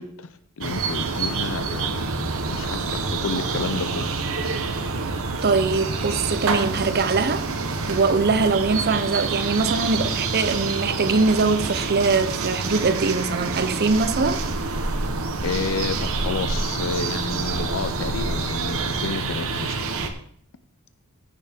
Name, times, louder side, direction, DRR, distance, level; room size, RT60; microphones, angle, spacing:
voice 1, 0.0-4.1 15.4-19.8, left 4 dB, 65° left, 0.5 m, -31 dB
sound 1, 0.6-20.1, right 4 dB, 65° right, 1.0 m, -27 dB
voice 2, 5.4-7.5 7.9-14.4, right 4 dB, 45° right, 0.7 m, -22 dB
15.0 x 6.7 x 3.6 m
head